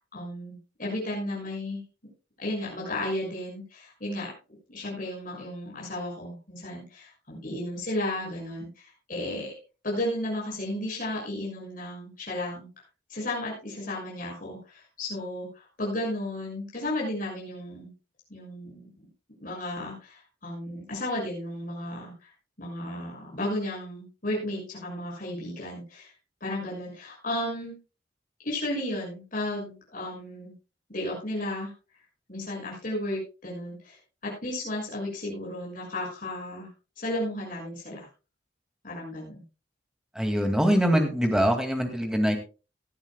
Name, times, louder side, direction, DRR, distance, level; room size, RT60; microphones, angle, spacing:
voice 1, 0.1-1.8 2.4-4.3 4.7-9.5 9.8-12.7 13.1-17.9 18.3-19.1 19.4-22.3 22.6-26.1 26.4-27.7 28.4-30.5 30.9-31.7 32.3-36.7 37.0-38.1 38.8-39.4, left 1 dB, 50° left, -4 dB, 6.5 m, -34 dB
voice 2, 40.2-42.4, equal, 5° right, 4 dB, 2.3 m, -23 dB
19.0 x 12.5 x 2.3 m, 0.32 s
head